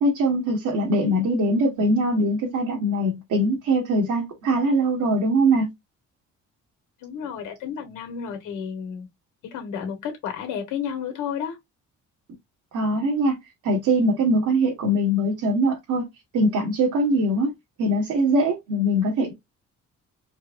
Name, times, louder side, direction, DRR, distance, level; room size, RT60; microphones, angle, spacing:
voice 1, 0.0-5.7 12.7-13.4 13.6-16.1 16.3-17.5 17.8-19.3, right 1 dB, 80° right, 1.6 m, -22 dB
voice 2, 7.0-9.1 9.5-11.6, left 7 dB, 90° left, 1.5 m, -31 dB
4.4 x 2.3 x 2.6 m
cardioid pair, 90°, 30 cm